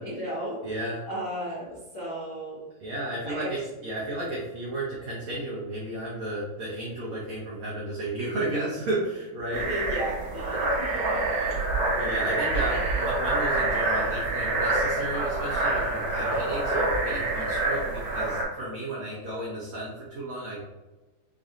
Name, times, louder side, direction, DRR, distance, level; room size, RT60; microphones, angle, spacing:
voice 1, 0.0-0.6 1.1-2.6 3.2-3.5 9.5-11.6 12.0-12.3 12.7-12.9, equal, 70° left, -10 dB, 1.1 m, -35 dB
voice 2, 0.6-1.0 2.8-9.6 11.9-20.6, right 1 dB, 85° right, -6 dB, 1.5 m, -33 dB
sound 1, 9.5-18.4, right 2 dB, 65° right, 2.5 m, -27 dB
6.2 x 2.7 x 2.5 m, 1.1 s
omnidirectional pair, 4.4 m